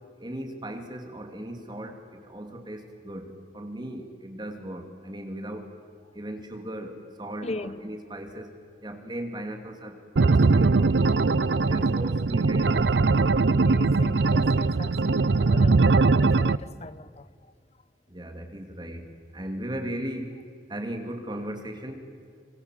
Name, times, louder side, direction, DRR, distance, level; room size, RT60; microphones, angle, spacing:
voice 1, 0.2-5.7 6.1-8.5 8.8-10.0 10.3-11.1 11.6-13.3 15.2-15.6 18.1-19.0 19.3-20.3 20.7-22.1, right 1 dB, 25° right, 2.7 m, -37 dB
voice 2, 7.4-7.9 11.6-12.0 13.5-15.8 16.2-17.3, left 2 dB, 40° left, 0.9 m, -39 dB
sound 1, 10.2-16.6, right 3 dB, 85° right, 0.6 m, -21 dB
26.0 x 25.5 x 7.6 m
head